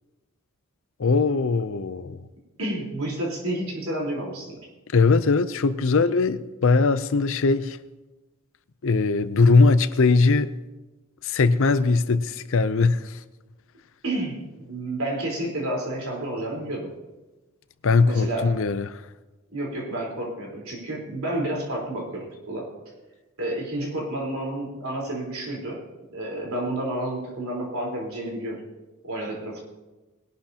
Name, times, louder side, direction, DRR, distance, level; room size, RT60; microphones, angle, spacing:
voice 1, 1.0-2.2 4.9-7.8 8.8-10.5 11.2-13.2 17.8-19.0, left 4 dB, 65° left, 0.6 m, -20 dB
voice 2, 2.6-4.6 14.0-16.9 18.0-18.5 19.5-22.7 23.4-25.8 26.1-28.6 29.0-29.6, right 1 dB, 75° right, 4.1 m, -30 dB
20.5 x 11.5 x 2.9 m
head